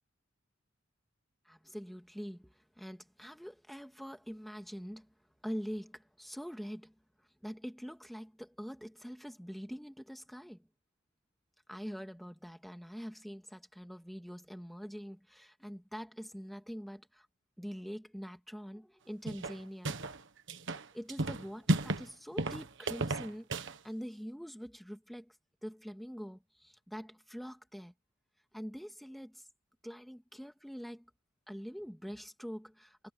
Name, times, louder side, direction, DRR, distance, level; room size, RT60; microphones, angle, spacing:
voice 1, 1.5-5.1 5.4-10.7 11.7-17.3 17.6-20.0 20.9-25.4 25.6-27.9 28.5-29.5 29.8-31.1 31.5-33.1, equal, ahead, 2.0 m, -44 dB
sound 1, 19.3-20.2 20.5-22.1 22.4-23.8, right 2 dB, 65° right, 1.4 m, -33 dB
head